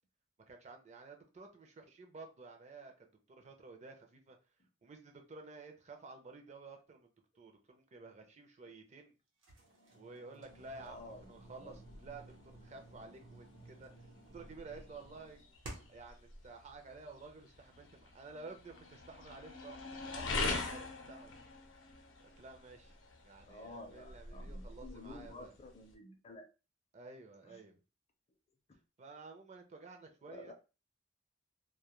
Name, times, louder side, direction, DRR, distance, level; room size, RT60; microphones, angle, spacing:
voice 1, 0.5-4.4 4.8-7.1 7.4-9.1 9.9-13.9 14.3-15.4 15.9-21.4 22.4-23.0 23.2-25.5 26.9-27.8 29.0-30.5, right 3 dB, 35° right, 4 dB, 0.4 m, -52 dB
sound 1, 9.4-16.1, right 2 dB, 80° right, 0.8 m, -55 dB
sound 2, 10.4-25.9, left 3 dB, 85° left, 0.6 m, -45 dB
voice 2, 10.8-11.8 23.4-26.5 27.4-27.6 30.3-30.5, left 2 dB, 35° left, 4 dB, 0.5 m, -51 dB
2.2 x 2.1 x 2.9 m, 0.31 s
head